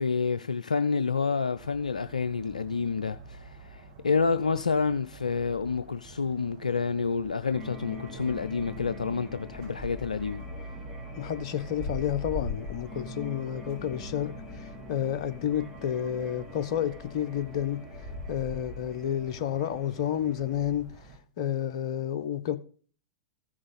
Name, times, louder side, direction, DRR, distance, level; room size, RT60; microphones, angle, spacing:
voice 1, 0.0-10.5, left 5 dB, 80° left, 0.4 m, -29 dB
sound 1, 1.5-21.2, left 1 dB, 45° right, 5.2 m, -44 dB
sound 2, 7.5-20.7, left 1 dB, ahead, 3.0 m, -45 dB
voice 2, 11.1-17.8 18.3-20.9 21.4-22.6, left 10 dB, 50° left, 0.8 m, -30 dB
14.5 x 6.3 x 4.0 m
figure-of-eight pair, 95°, 4 cm